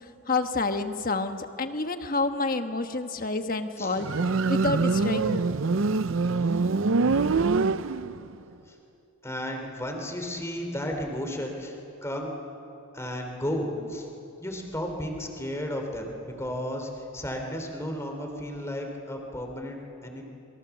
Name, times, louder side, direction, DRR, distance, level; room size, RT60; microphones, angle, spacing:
voice 1, 0.3-4.1 4.5-5.5, left 3 dB, 40° left, 7 dB, 1.3 m, -28 dB
Motorcycle, 4.0-8.3, right 4 dB, 65° right, 0.6 m, -24 dB
voice 2, 7.0-7.7 8.7-8.8 9.2-12.4 12.9-14.1 14.4-20.2, equal, 15° left, 3 dB, 3.1 m, -34 dB
27.5 x 23.5 x 7.2 m, 2.9 s
head